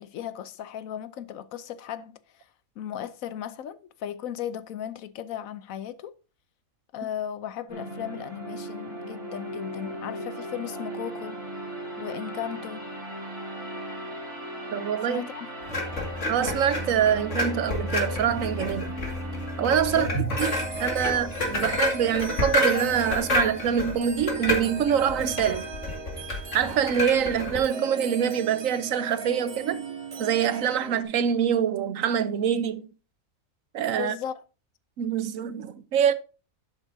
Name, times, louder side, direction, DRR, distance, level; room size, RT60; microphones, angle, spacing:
voice 1, 0.0-2.2 2.8-6.1 6.9-11.4 12.0-12.9 15.1-15.5 19.9-20.3 34.0-34.4, left 10 dB, 85° left, 1.1 m, -36 dB
sound 1, 7.7-19.7, right 1 dB, 25° right, 2.9 m, -38 dB
voice 2, 14.7-15.3 16.3-19.0 19.6-20.1 20.4-25.7 26.5-29.8 30.2-32.9 33.7-34.1 35.0-36.1, right 8 dB, 80° right, 1.2 m, -25 dB
sound 2, 15.7-27.6, left 1 dB, 60° left, 2.5 m, -30 dB
sound 3, 20.3-31.0, right 4 dB, 50° right, 1.9 m, -39 dB
11.0 x 8.2 x 2.7 m
omnidirectional pair, 1.4 m